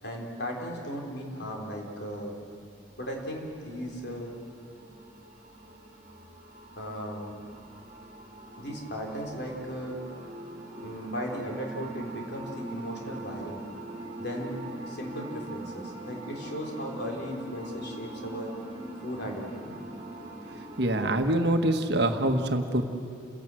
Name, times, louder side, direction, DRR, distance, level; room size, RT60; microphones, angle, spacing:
voice 1, 0.0-2.4 3.0-4.4 6.8-7.4 8.6-10.0 10.8-13.6 14.2-18.5 19.0-19.8, equal, 55° left, 0 dB, 4.0 m, -36 dB
sound 1, 2.5-21.0, right 1 dB, 30° right, 3.0 m, -42 dB
voice 2, 20.8-22.9, right 1 dB, 55° right, 5 dB, 1.4 m, -25 dB
30.0 x 17.5 x 7.7 m, 2.5 s
head